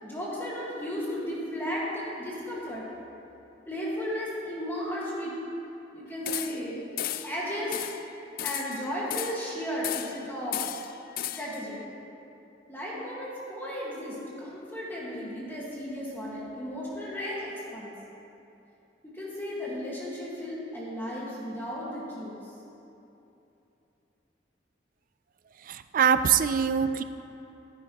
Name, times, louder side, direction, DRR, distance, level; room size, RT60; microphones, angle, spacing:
voice 1, 0.0-2.8 3.7-5.3 5.9-6.8 7.2-7.7 8.4-10.6 11.3-11.8 12.7-17.9 19.0-22.4, equal, 10° left, -7 dB, 1.7 m, -34 dB
sound 1, 6.3-6.7 7.0-7.4 7.7-8.0 8.4-9.5 9.8-10.2 10.5-11.6, left 11 dB, 55° left, 0.4 m, -34 dB
voice 2, 25.7-27.0, right 7 dB, 50° right, 11 dB, 0.4 m, -23 dB
13.5 x 9.9 x 3.0 m, 2.9 s
head